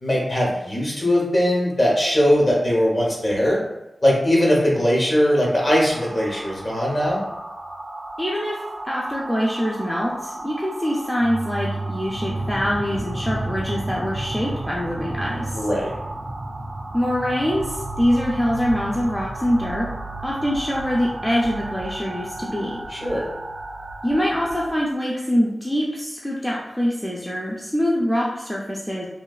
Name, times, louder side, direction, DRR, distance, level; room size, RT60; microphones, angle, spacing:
voice 1, 0.0-3.6 4.0-7.2 15.5-15.9 22.9-23.3, equal, 40° left, -3 dB, 0.9 m, -20 dB
sound 1, 5.9-24.7, right 2 dB, 80° right, 0.5 m, -32 dB
voice 2, 8.2-15.6 16.9-19.9 20.2-22.8 24.0-29.1, equal, 10° left, -4 dB, 0.4 m, -24 dB
3.0 x 2.3 x 2.3 m, 0.95 s
wide cardioid pair, 75°, 0 cm